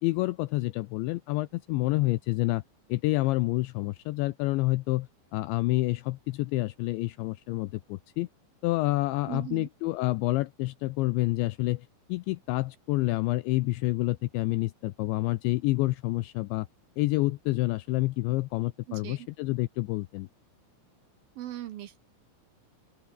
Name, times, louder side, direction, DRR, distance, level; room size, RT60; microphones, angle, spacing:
voice 1, 0.0-2.6 2.9-8.3 8.6-16.7 17.0-20.3, left 20 dB, 85° left, 2.7 m, -28 dB
voice 2, 9.3-9.7 18.9-19.3 21.4-22.0, right 13 dB, 70° right, 2.2 m, -39 dB
open air
omnidirectional pair, 5.8 m